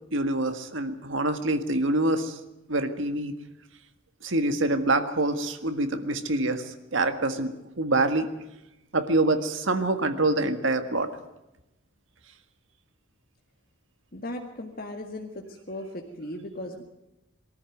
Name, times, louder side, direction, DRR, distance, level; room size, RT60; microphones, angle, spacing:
voice 1, 0.1-2.4 2.7-3.3 4.2-8.3 8.9-11.1, right 2 dB, 65° right, 8 dB, 1.8 m, -26 dB
voice 2, 14.1-15.3 15.7-16.8, left 1 dB, 45° left, 2 dB, 1.9 m, -37 dB
23.0 x 14.0 x 9.3 m, 0.93 s
head